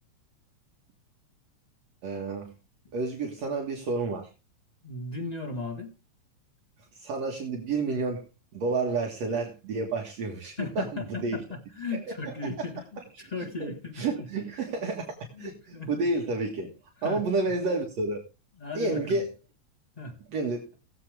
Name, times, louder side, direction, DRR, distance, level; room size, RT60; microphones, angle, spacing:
voice 1, 2.0-2.5 2.9-4.3 7.0-8.2 8.5-11.4 13.2-13.3 14.0-16.7 17.0-18.2 18.8-19.2 20.3-20.6, right 3 dB, 65° right, 2.8 m, -30 dB
voice 2, 4.8-5.9 10.6-14.7 15.3-16.0 17.0-17.2 18.6-19.2 20.0-20.2, left 3 dB, 40° left, 0.5 m, -37 dB
18.5 x 7.6 x 3.4 m
omnidirectional pair, 3.3 m